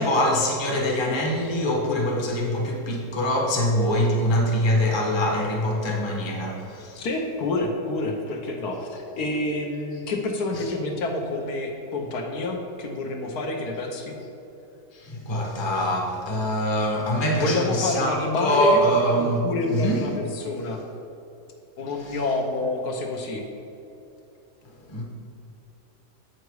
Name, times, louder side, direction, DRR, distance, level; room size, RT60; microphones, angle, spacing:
voice 1, 0.0-7.1 14.9-19.4 19.7-20.1 22.0-22.2 24.9-25.0, equal, 20° left, -1 dB, 0.8 m, -24 dB
voice 2, 6.9-14.1 17.4-18.8 19.2-20.8 21.8-23.4, left 2 dB, 70° left, 2 dB, 1.3 m, -28 dB
8.0 x 5.9 x 4.7 m, 2.9 s
omnidirectional pair, 1.7 m